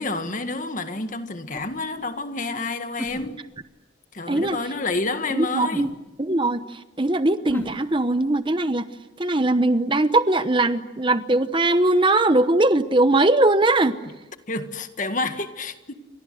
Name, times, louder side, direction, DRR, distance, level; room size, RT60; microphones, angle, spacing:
voice 1, 0.0-3.4 4.1-6.0 14.5-15.9, left 3 dB, 40° left, 1.9 m, -29 dB
sound 1, 1.5-1.8 3.0-3.6 4.3-4.5 5.7-5.9 7.5-7.8, equal, 10° left, 2.6 m, -33 dB
voice 2, 5.3-5.9 6.2-6.6 7.0-8.9 9.2-14.0, right 2 dB, 25° right, 0.9 m, -20 dB
29.5 x 25.5 x 7.8 m
head